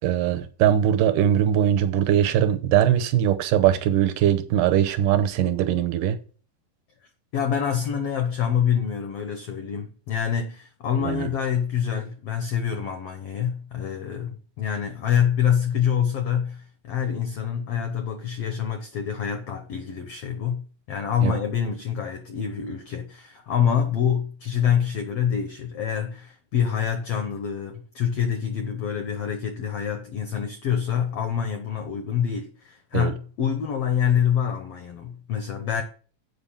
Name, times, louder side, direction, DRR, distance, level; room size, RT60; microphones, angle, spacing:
voice 1, 0.0-6.2 11.0-11.3 21.2-21.3 32.9-33.1, right 10 dB, 75° right, 2.3 m, -21 dB
voice 2, 7.3-35.8, left 8 dB, 70° left, 1.4 m, -26 dB
8.0 x 5.3 x 7.2 m
omnidirectional pair, 4.1 m